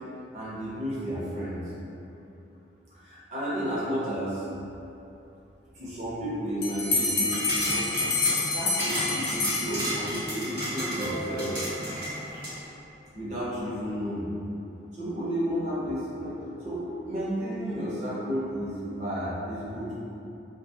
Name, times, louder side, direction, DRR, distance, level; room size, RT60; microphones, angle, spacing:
voice 1, 0.3-1.6 2.9-4.4 5.7-7.8 8.5-12.1 13.1-14.3 14.9-19.9, equal, 40° right, -9 dB, 0.6 m, -32 dB
Bell, 6.6-10.2, left 3 dB, 60° left, 0.4 m, -28 dB
sound 1, 7.2-12.6, equal, 60° right, 1.0 m, -33 dB
2.4 x 2.2 x 2.7 m, 2.8 s
head